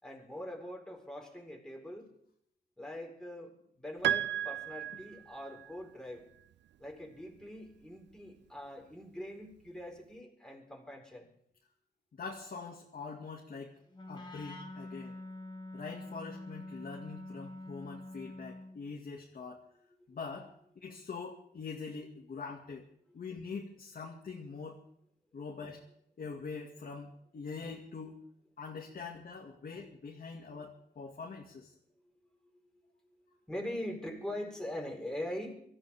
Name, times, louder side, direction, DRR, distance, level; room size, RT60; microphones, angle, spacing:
voice 1, 0.0-2.1 2.8-6.2 6.8-11.3 33.5-35.6, left 1 dB, 5° left, -1 dB, 4.5 m, -42 dB
Piano, 4.0-5.7, right 11 dB, 90° right, 0.5 m, -34 dB
voice 2, 12.1-13.8 14.1-15.2 15.7-19.6 20.1-20.5 20.8-22.9 23.1-24.8 25.3-25.8 26.2-28.2 28.6-31.7, left 4 dB, 55° left, -1 dB, 2.2 m, -44 dB
Wind instrument woodwind instrument, 13.9-18.8, left 2 dB, 25° left, 2.3 m, -46 dB
25.0 x 14.5 x 3.6 m, 0.70 s
wide cardioid pair, 105°, 18 cm